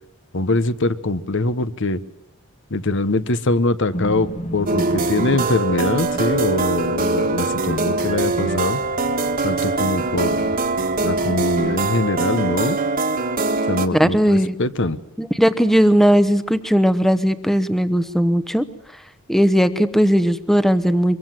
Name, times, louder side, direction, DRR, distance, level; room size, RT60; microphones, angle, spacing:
voice 1, 0.3-2.0 2.7-8.8 9.4-10.5 11.0-12.8 13.7-15.0, left 2 dB, 55° left, 14 dB, 1.1 m, -23 dB
sound 1, 3.9-12.0, equal, 30° left, 1.1 m, -36 dB
sound 2, 4.7-13.9, right 3 dB, 40° right, 1.7 m, -22 dB
voice 2, 13.9-14.6 15.2-18.7 19.3-21.2, equal, ahead, 12 dB, 1.0 m, -17 dB
24.5 x 23.0 x 7.7 m, 0.77 s
head